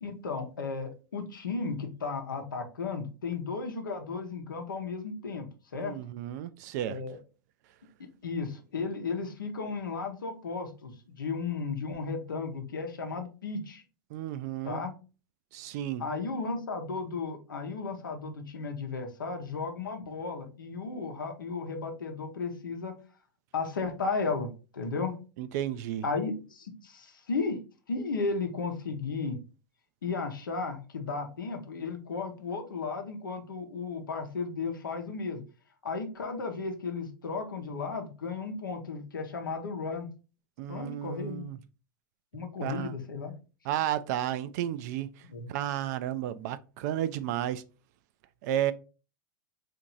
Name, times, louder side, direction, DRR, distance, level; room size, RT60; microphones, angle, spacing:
voice 1, 0.0-6.0 6.9-7.2 8.2-13.8 14.6-14.9 16.0-23.0 23.5-25.2 26.0-27.6 27.9-29.4 30.0-35.4 35.8-40.1 40.7-41.4 42.3-43.3 45.3-45.5, left 4 dB, 90° left, 0.7 m, -34 dB
voice 2, 5.7-7.0 14.1-14.8 15.5-16.0 25.4-26.0 40.6-41.6 42.6-42.9 43.6-47.6 48.4-48.7, right 12 dB, 60° right, 0.4 m, -32 dB
2.9 x 2.5 x 3.8 m
hypercardioid pair, 100°, 11 cm